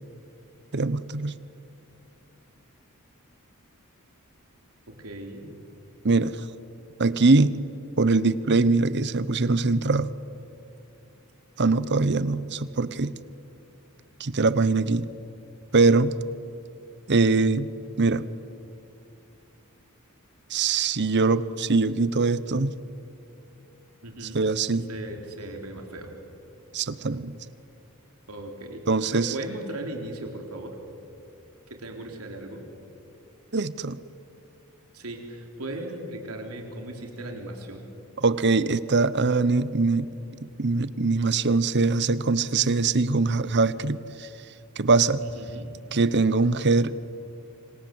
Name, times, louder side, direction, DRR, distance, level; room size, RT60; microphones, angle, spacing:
voice 1, 0.7-1.3 6.0-6.4 7.0-7.6 8.0-10.1 11.6-13.1 14.2-15.1 15.7-16.1 17.1-17.7 18.0-18.2 20.5-22.7 24.3-24.9 26.7-27.3 28.9-29.3 33.5-34.0 38.2-40.1 40.6-44.3 44.8-45.2 45.9-46.9, right 3 dB, 55° right, 16 dB, 0.9 m, -22 dB
voice 2, 4.9-5.5 24.0-24.4 24.9-26.1 28.3-28.8 29.1-30.8 31.7-32.6 34.9-37.9 45.2-45.7, right 1 dB, 85° right, 3 dB, 3.9 m, -37 dB
27.0 x 26.0 x 7.9 m, 2.7 s
head